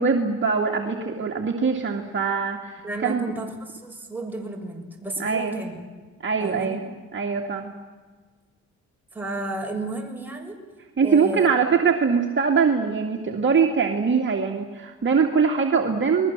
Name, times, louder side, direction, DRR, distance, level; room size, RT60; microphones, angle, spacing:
voice 1, 0.0-3.3 5.2-5.6 6.2-6.8 7.1-7.7 11.0-16.3, right 5 dB, 40° right, 1 dB, 2.7 m, -22 dB
voice 2, 2.8-5.9 6.4-6.8 9.1-10.6 11.0-11.5, right 2 dB, 5° right, 1 dB, 6.9 m, -32 dB
29.5 x 21.0 x 7.6 m, 1.4 s
cardioid pair, 90°, 30 cm